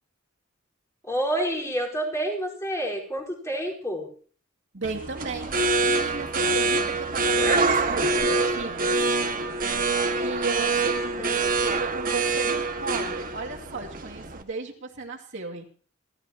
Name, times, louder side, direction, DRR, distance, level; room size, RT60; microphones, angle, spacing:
voice 1, 1.1-4.1 11.2-11.5, right 1 dB, 15° left, -2 dB, 4.6 m, -29 dB
voice 2, 4.7-5.5 5.9-9.0 10.2-15.6, right 3 dB, 65° right, -1 dB, 2.6 m, -35 dB
sound 1, 4.8-14.4, right 3 dB, 45° right, 1.7 m, -25 dB
29.5 x 14.0 x 3.0 m, 0.43 s
head